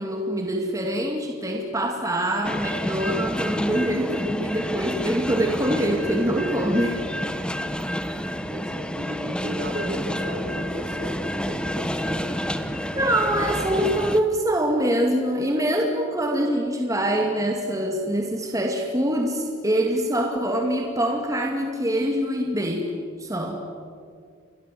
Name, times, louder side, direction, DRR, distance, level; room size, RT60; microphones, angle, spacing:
voice 1, 0.0-7.3 12.9-22.9 23.2-23.7, right 1 dB, 15° right, 2 dB, 2.3 m, -24 dB
sound 1, 2.4-14.2, equal, 5° left, 1.1 m, -29 dB
voice 2, 7.4-12.4, equal, 55° right, 5 dB, 4.2 m, -37 dB
29.5 x 22.5 x 7.7 m, 2.2 s
head